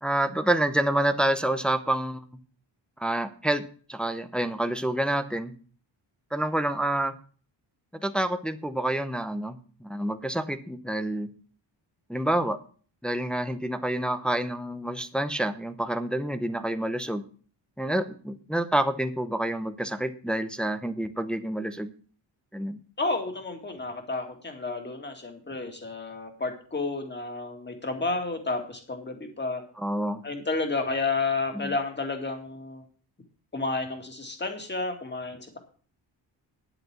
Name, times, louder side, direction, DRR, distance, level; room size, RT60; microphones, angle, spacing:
voice 1, 0.0-2.2 3.0-3.6 3.9-5.5 6.3-7.1 8.0-11.3 12.1-12.6 13.0-17.2 17.8-21.9 22.5-22.8 29.8-30.2 31.5-31.7, right 1 dB, ahead, 9 dB, 0.7 m, -28 dB
voice 2, 23.0-29.6 30.2-32.8 33.5-35.6, left 3 dB, 25° left, 4 dB, 2.3 m, -31 dB
10.5 x 8.0 x 6.1 m, 0.41 s
wide cardioid pair, 175°, 46 cm